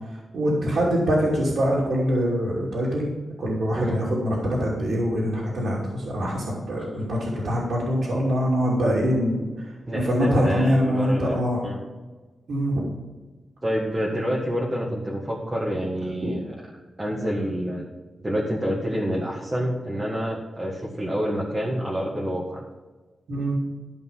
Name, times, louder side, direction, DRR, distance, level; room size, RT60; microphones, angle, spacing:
voice 1, 0.1-3.1 3.4-11.6 12.5-12.8 16.2-16.3 23.3-23.6, equal, 75° right, -6 dB, 2.8 m, -24 dB
voice 2, 9.9-11.3 11.6-11.8 13.6-16.5 17.0-17.9 18.2-22.6, equal, 15° right, -5 dB, 1.8 m, -27 dB
13.5 x 5.3 x 5.7 m, 1.3 s
wide cardioid pair, 125°, 0 cm